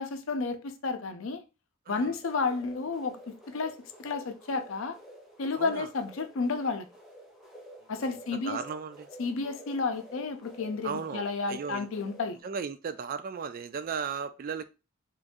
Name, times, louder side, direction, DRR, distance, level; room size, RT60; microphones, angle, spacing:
voice 1, 0.0-1.4 1.9-5.0 5.4-6.9 7.9-8.6 9.2-12.4, left 4 dB, 75° left, 0.5 m, -32 dB
sound 1, 2.2-12.4, right 1 dB, ahead, 0.9 m, -50 dB
voice 2, 5.6-5.9 8.0-8.1 8.5-9.1 10.8-11.9 12.4-14.7, right 6 dB, 45° right, 0.3 m, -36 dB
3.1 x 2.6 x 3.6 m
head